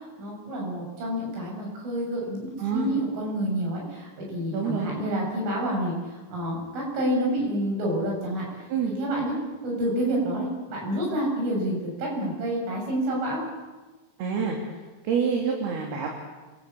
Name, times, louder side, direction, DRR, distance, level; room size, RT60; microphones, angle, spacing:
voice 1, 0.2-6.0 6.3-8.4 8.8-9.4 9.6-13.4, right 1 dB, 80° right, -2 dB, 9.5 m, -28 dB
voice 2, 2.6-2.9 4.5-4.9 8.7-8.9 14.2-14.6 15.0-16.1, right 6 dB, 60° right, 0 dB, 4.6 m, -27 dB
29.0 x 22.0 x 8.7 m, 1.2 s
omnidirectional pair, 5.5 m